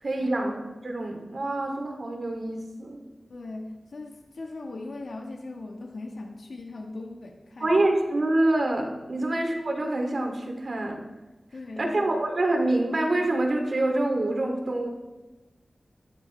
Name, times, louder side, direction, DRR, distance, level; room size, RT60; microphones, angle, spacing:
voice 1, 0.0-3.0 7.6-11.0 11.8-14.9, right 2 dB, 60° right, 2 dB, 2.5 m, -26 dB
voice 2, 3.3-7.7 9.2-9.3 11.5-12.1, left 2 dB, 75° left, 1 dB, 1.3 m, -39 dB
17.0 x 13.0 x 3.2 m, 1.2 s
wide cardioid pair, 95°, 0 cm